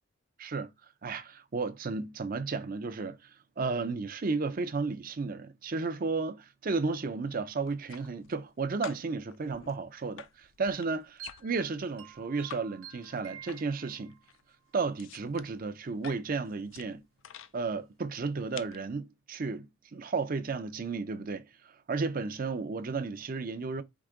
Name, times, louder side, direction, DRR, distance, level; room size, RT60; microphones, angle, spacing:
voice 1, 0.4-0.7 1.0-14.2 14.7-17.0 17.5-23.8, right 4 dB, 40° right, 0.5 m, -33 dB
sound 1, 7.6-8.5 8.8-12.6 12.9-13.8 14.1-17.5 18.2-18.9, left 9 dB, 70° left, 0.4 m, -48 dB
sound 2, 10.8-14.3, right 9 dB, 85° right, 0.9 m, -50 dB
4.7 x 2.8 x 3.6 m
head